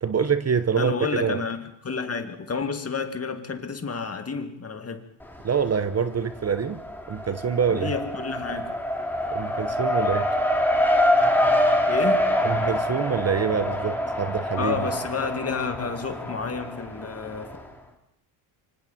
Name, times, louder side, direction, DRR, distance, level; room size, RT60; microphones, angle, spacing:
voice 1, 0.0-0.9 1.2-1.4 5.4-6.8 7.1-7.9 9.3-10.3 12.4-14.9, right 6 dB, 30° right, 1.0 m, -25 dB
voice 2, 0.8-5.0 7.7-8.8 11.9-12.4 14.6-17.6, left 5 dB, 30° left, 2.3 m, -30 dB
Race car auto racing, 5.2-6.0 6.3-17.6, left 1 dB, 5° left, 3.1 m, -25 dB
25.0 x 24.5 x 4.3 m
cardioid pair, 95°, 50 cm